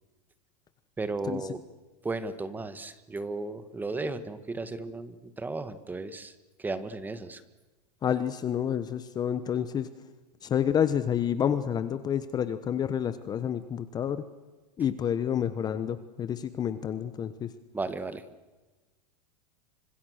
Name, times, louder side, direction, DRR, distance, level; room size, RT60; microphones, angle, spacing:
voice 1, 1.0-1.6 2.0-7.4 17.7-18.2, right 3 dB, 10° right, 13 dB, 1.6 m, -35 dB
voice 2, 8.0-9.9 10.4-14.2 14.8-17.5, left 9 dB, 20° left, 13 dB, 1.1 m, -29 dB
29.5 x 26.0 x 6.6 m, 1.2 s
supercardioid pair, 150°, 20 cm